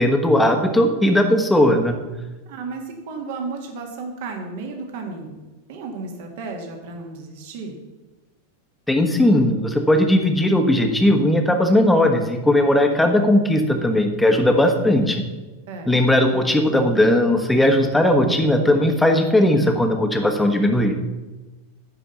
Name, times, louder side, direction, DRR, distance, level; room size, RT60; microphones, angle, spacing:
voice 1, 0.0-2.0 8.9-15.2 15.9-21.0, left 1 dB, 5° left, 4 dB, 1.3 m, -18 dB
voice 2, 2.5-5.4 5.7-7.8 15.7-15.9, right 4 dB, 50° right, 3 dB, 1.8 m, -33 dB
10.0 x 5.0 x 7.0 m, 1.2 s
figure-of-eight pair, 90°, 0 cm